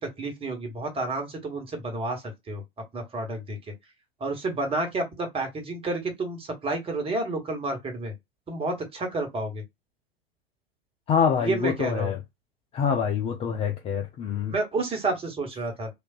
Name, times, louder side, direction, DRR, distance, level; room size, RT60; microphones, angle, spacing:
voice 1, 0.0-2.6 2.9-3.6 4.2-8.1 8.5-9.6 11.4-12.1 14.5-15.9, right 2 dB, 20° right, 1.1 m, -30 dB
voice 2, 11.1-12.2 12.7-14.5, left 7 dB, 20° left, 0.4 m, -25 dB
3.3 x 2.4 x 2.2 m
figure-of-eight pair, 90°, 30 cm